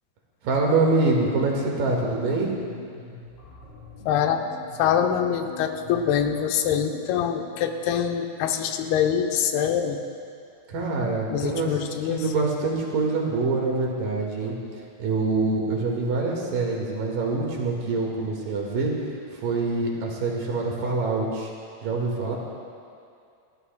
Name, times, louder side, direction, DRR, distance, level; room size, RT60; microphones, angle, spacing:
voice 1, 0.4-2.6 10.7-11.7 12.1-14.6 15.0-18.9 19.3-21.5 21.8-22.4, right 3 dB, 65° right, -2 dB, 3.3 m, -25 dB
sound 1, 0.7-7.8, left 4 dB, 50° left, 3.9 m, -45 dB
voice 2, 4.1-4.4 4.8-10.0 11.3-12.2, left 8 dB, 85° left, 5 dB, 2.7 m, -24 dB
28.0 x 12.5 x 2.2 m, 2.4 s
omnidirectional pair, 4.4 m